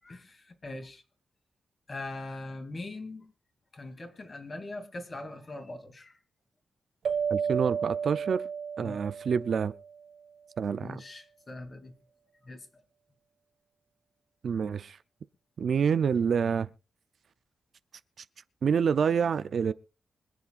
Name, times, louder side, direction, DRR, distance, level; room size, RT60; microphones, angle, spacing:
voice 1, 0.0-1.0 1.9-3.3 3.7-6.2 8.8-9.0 10.8-11.9 12.4-12.7, left 2 dB, 35° left, 2.8 m, -41 dB
sound 1, 7.1-10.0, right 7 dB, 80° right, 1.5 m, -32 dB
voice 2, 7.3-8.4 8.8-9.7 10.6-11.0 14.4-15.0 15.6-16.7 18.6-19.7, right 6 dB, 60° right, 0.5 m, -27 dB
25.0 x 8.4 x 2.5 m
wide cardioid pair, 115°, 0 cm